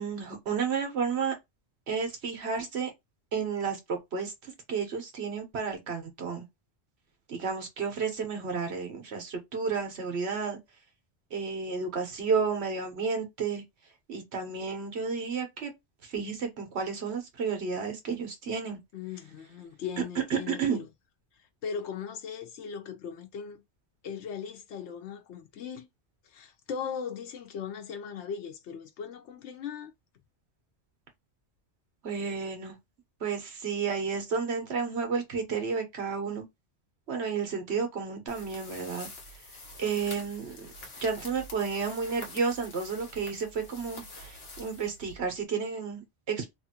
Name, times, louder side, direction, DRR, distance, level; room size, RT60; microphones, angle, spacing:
voice 1, 0.0-1.3 1.9-2.9 3.3-4.3 4.7-6.4 7.3-10.6 11.3-13.6 14.1-15.7 16.1-18.8 20.3-20.8 32.0-32.7 33.2-36.4 37.1-39.1 39.8-40.7 41.0-46.5, right 5 dB, 75° right, 1.3 m, -31 dB
voice 2, 18.9-20.9 21.6-23.6 24.0-25.9 26.2-29.9, left 7 dB, 90° left, 1.0 m, -38 dB
sound 1, 38.3-45.4, left 2 dB, 65° left, 1.2 m, -46 dB
3.1 x 2.5 x 2.8 m
omnidirectional pair, 1.1 m